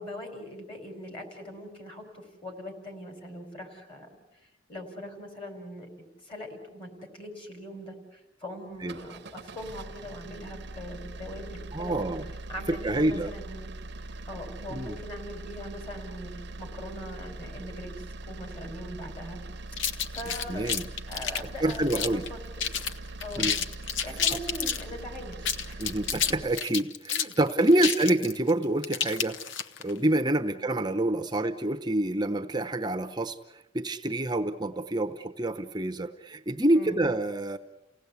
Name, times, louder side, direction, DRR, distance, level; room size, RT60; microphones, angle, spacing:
voice 1, 0.0-4.1 4.7-5.9 6.2-12.2 12.5-13.7 14.3-17.9 18.2-19.4 20.1-20.7 21.1-22.4 23.2-23.5 24.0-25.9 27.7-27.8 30.4-30.6 36.7-37.0, equal, 30° left, 4 dB, 4.8 m, -41 dB
sound 1, 8.7-26.6, right 2 dB, 60° right, 0.8 m, -42 dB
voice 2, 11.7-12.3 12.7-13.3 14.7-15.0 20.5-20.9 21.6-22.2 23.4-23.6 24.3-24.4 25.8-29.4 29.8-37.6, right 1 dB, 20° right, 6 dB, 0.8 m, -27 dB
sound 2, 19.8-22.3 22.6-22.9 23.2-24.8 25.3-29.9, left 7 dB, 70° left, 0.9 m, -30 dB
30.0 x 17.5 x 8.3 m, 0.98 s
head